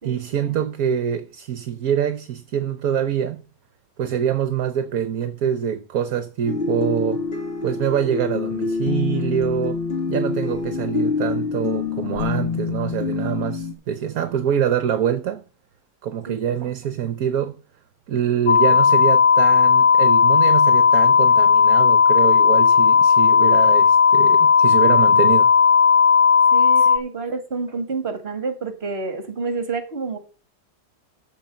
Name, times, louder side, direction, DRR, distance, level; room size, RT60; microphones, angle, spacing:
voice 1, 0.0-3.4 4.0-7.2 7.6-9.8 10.1-15.4 16.0-17.6 18.1-25.5 26.8-26.9, right 9 dB, 60° right, 1.2 m, -25 dB
sound 1, 6.5-13.7, left 4 dB, 35° left, 1.6 m, -26 dB
sound 2, 18.5-27.0, left 6 dB, 60° left, 0.5 m, -15 dB
voice 2, 26.5-30.2, right 4 dB, 35° right, 2.1 m, -28 dB
13.5 x 4.6 x 6.7 m
omnidirectional pair, 1.9 m